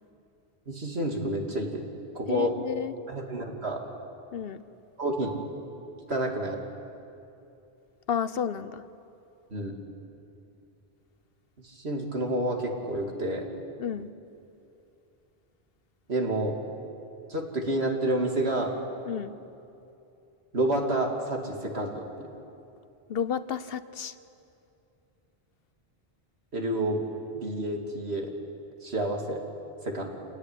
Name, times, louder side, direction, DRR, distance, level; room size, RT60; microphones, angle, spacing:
voice 1, 0.7-1.9 2.1-2.5 3.1-3.8 5.0-5.4 6.1-6.6 9.5-9.8 11.6-13.4 16.1-16.5 17.3-18.7 20.5-22.3 26.5-27.0 27.3-28.3 28.8-29.4 29.8-30.1, right 1 dB, 90° right, 1 dB, 3.1 m, -29 dB
voice 2, 2.3-2.9 4.3-4.6 8.1-8.8 13.8-14.1 19.1-19.3 23.1-24.1, left 8 dB, 70° left, 14 dB, 1.0 m, -31 dB
28.0 x 18.0 x 10.0 m, 2.7 s
omnidirectional pair, 1.0 m